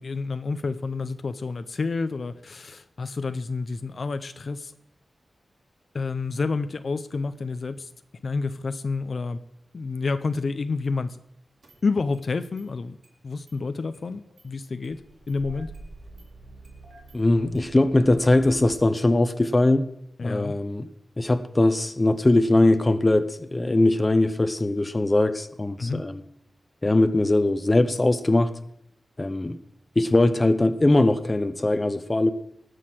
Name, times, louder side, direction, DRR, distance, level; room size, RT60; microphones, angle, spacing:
voice 1, 0.0-4.7 5.9-7.9 8.2-9.4 9.7-11.2 11.8-13.0 13.2-15.7 20.2-20.5 25.8-26.0, left 4 dB, 55° left, 11 dB, 0.7 m, -29 dB
Engine starting, 10.2-10.3 11.6-12.3 12.6-12.7 13.0-13.1 13.5-13.6 13.9-14.5 14.8-18.8, right 3 dB, 75° right, 3.6 m, -46 dB
voice 2, 17.1-19.9 20.2-20.9 21.2-26.2 26.8-28.6 29.2-29.6 30.0-32.3, left 2 dB, 25° left, 12 dB, 0.9 m, -21 dB
19.0 x 6.5 x 7.7 m, 0.77 s
wide cardioid pair, 100°, 0 cm